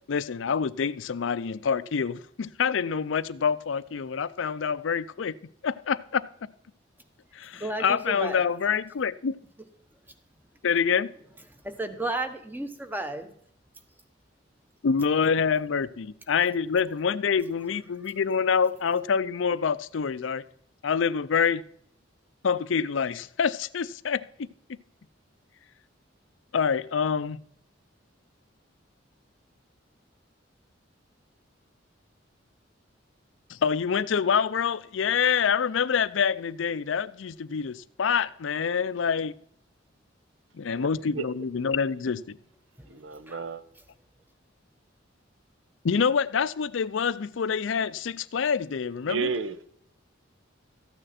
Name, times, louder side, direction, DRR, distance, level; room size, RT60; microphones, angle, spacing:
voice 1, 0.1-5.4 5.6-6.5 7.3-9.4 10.6-11.1 14.8-20.4 20.8-21.6 22.4-24.8 26.5-27.4 33.5-39.3 40.5-42.4 45.8-49.3, left 6 dB, 80° left, 0.5 m, -26 dB
voice 2, 7.5-8.4 11.6-13.3 42.8-42.9 43.3-43.4, right 2 dB, 10° right, 1.0 m, -33 dB
voice 3, 41.1-41.5 42.9-43.6 49.1-49.6, right 5 dB, 85° right, 0.8 m, -32 dB
13.5 x 9.0 x 4.2 m
head